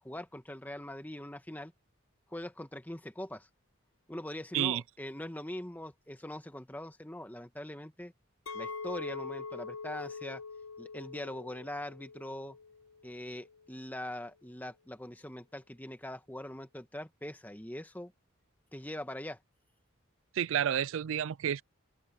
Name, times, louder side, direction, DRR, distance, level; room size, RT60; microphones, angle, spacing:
voice 1, 0.0-1.7 2.3-3.5 4.1-8.1 8.5-10.4 10.8-12.6 13.0-18.1 18.7-19.4, left 1 dB, 10° left, 1.4 m, -42 dB
Chink clink, 8.5-13.6, left 4 dB, 85° left, 1.6 m, -43 dB
voice 2, 20.3-21.6, right 9 dB, 75° right, 0.4 m, -30 dB
open air
head